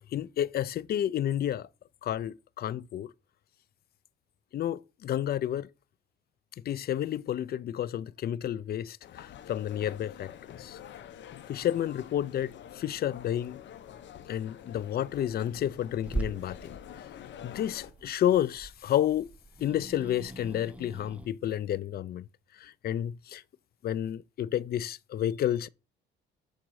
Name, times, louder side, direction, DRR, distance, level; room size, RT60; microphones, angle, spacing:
voice 1, 0.0-1.7 2.0-3.1 4.5-5.7 6.7-10.3 10.6-10.8 11.5-13.6 14.3-16.7 17.4-19.3 19.6-22.3 22.6-23.4 23.8-25.7, left 11 dB, 50° left, 0.4 m, -30 dB
sound 1, 9.0-17.9, left 10 dB, 70° left, 0.8 m, -47 dB
Growling / Hiss, 16.0-21.3, right 2 dB, 5° right, 0.7 m, -41 dB
7.3 x 3.9 x 4.6 m
cardioid pair, 90°, 20 cm